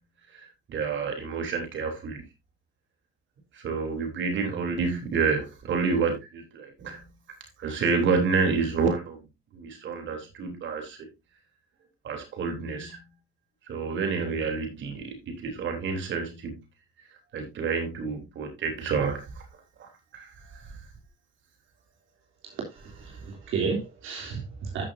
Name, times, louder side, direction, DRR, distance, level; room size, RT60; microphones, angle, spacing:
voice 1, 0.7-2.2 3.6-7.0 7.6-9.2 9.5-11.0 12.0-13.0 13.7-16.6 17.3-19.2 20.1-20.3, right 5 dB, 70° right, 3.6 m, -28 dB
voice 2, 22.4-24.8, right 5 dB, 85° right, 3.2 m, -33 dB
13.5 x 6.7 x 2.7 m
cardioid pair, 90°, 20 cm